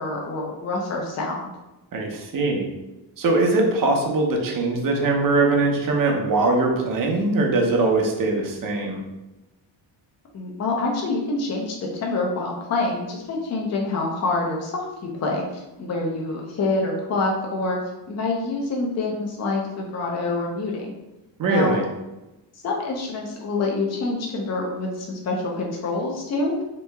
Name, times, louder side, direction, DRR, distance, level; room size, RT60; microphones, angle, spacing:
voice 1, 0.0-1.5 10.3-17.8 18.1-21.0 21.5-21.8 22.6-26.5, left 3 dB, 35° left, 0 dB, 0.5 m, -26 dB
voice 2, 1.9-2.7 3.2-9.0 21.4-21.9, right 2 dB, 50° right, 1 dB, 0.7 m, -21 dB
3.0 x 2.7 x 3.3 m, 1.0 s
wide cardioid pair, 160°, 45 cm